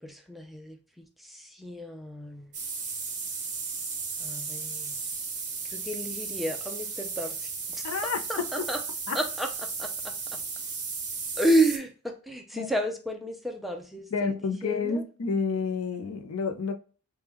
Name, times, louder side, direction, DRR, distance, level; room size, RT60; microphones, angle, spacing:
voice 1, 0.0-2.5 4.2-5.0 5.7-7.8 8.3-8.8 9.1-9.5 9.8-10.1 11.4-15.0, right 1 dB, ahead, 0.4 m, -31 dB
sound 1, 2.5-11.8, right 5 dB, 35° right, 0.8 m, -35 dB
voice 2, 7.8-8.2 9.1-9.2 12.5-12.7 14.1-16.7, left 5 dB, 70° left, 0.5 m, -29 dB
3.5 x 2.2 x 2.9 m
head